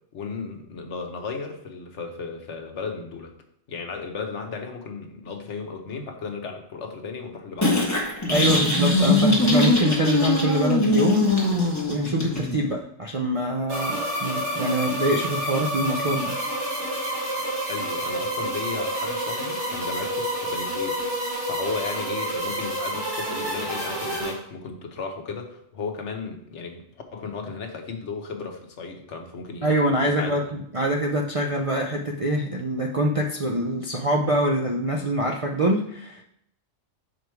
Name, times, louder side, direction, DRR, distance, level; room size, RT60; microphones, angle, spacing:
voice 1, 0.1-3.3 3.7-7.8 8.4-8.6 17.7-21.0 21.5-29.8 30.0-30.5, left 4 dB, 70° left, 4 dB, 1.3 m, -35 dB
sound 1, 7.6-12.6, left 2 dB, 15° left, 1.3 m, -21 dB
voice 2, 8.3-11.3 11.9-16.4 29.6-36.2, right 1 dB, 45° right, -1 dB, 0.4 m, -24 dB
sound 2, 13.7-24.3, right 1 dB, 65° right, 3.0 m, -29 dB
6.2 x 5.0 x 4.6 m, 0.73 s
omnidirectional pair, 1.3 m